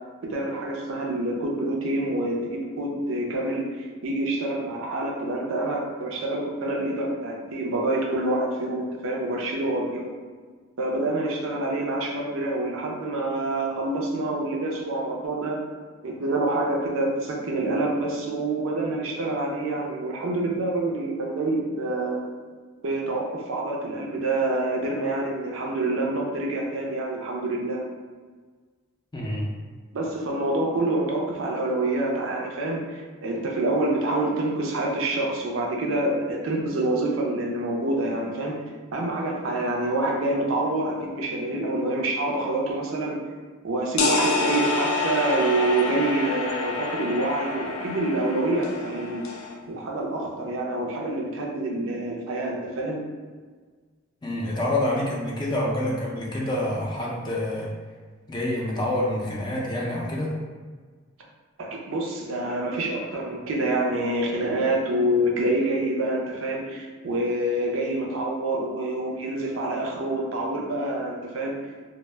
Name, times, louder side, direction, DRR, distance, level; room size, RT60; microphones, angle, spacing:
voice 1, 0.2-10.1 10.8-15.6 16.0-22.2 22.8-27.8 29.9-38.6 38.9-43.2 43.6-49.3 49.7-53.0 61.6-71.6, right 2 dB, 80° right, -1 dB, 0.5 m, -27 dB
voice 2, 29.1-29.6 54.2-57.7 58.3-60.4, left 1 dB, 20° left, -3 dB, 0.4 m, -27 dB
sound 1, 44.0-49.5, left 3 dB, 85° left, 0.4 m, -27 dB
2.1 x 2.0 x 3.2 m, 1.5 s
head